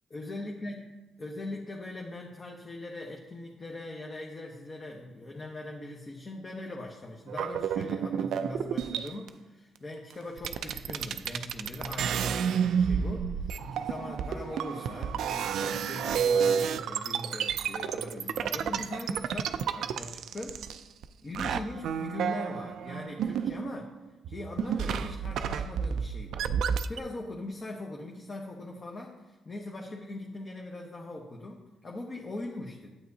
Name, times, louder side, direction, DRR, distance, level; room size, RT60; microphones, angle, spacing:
voice 1, 0.1-0.9 1.2-20.6 21.2-23.9 24.3-26.5 26.9-32.9, left 2 dB, 35° left, -1 dB, 1.0 m, -41 dB
sound 1, 7.3-9.3 10.1-10.2 10.4-21.1 21.3-24.0 24.2-27.0, right 7 dB, 75° right, 0.3 m, -31 dB
9.2 x 8.3 x 2.8 m, 1.1 s
cardioid pair, 90°, 0 cm